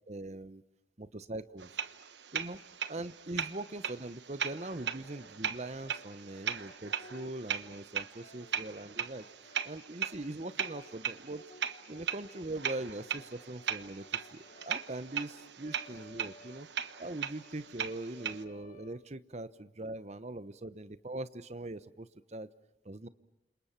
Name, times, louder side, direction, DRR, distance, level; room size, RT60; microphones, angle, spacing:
voice 1, 0.1-0.6 1.0-1.8 2.3-2.6 2.9-9.3 9.6-11.4 11.9-16.7 17.0-22.5 22.8-23.1, right 2 dB, 40° right, 14 dB, 0.9 m, -41 dB
sound 1, 1.6-18.4, right 8 dB, 75° right, 1.1 m, -39 dB
Brass instrument, 4.6-19.4, left 2 dB, 40° left, 1.4 m, -59 dB
29.5 x 27.0 x 5.9 m, 0.87 s
head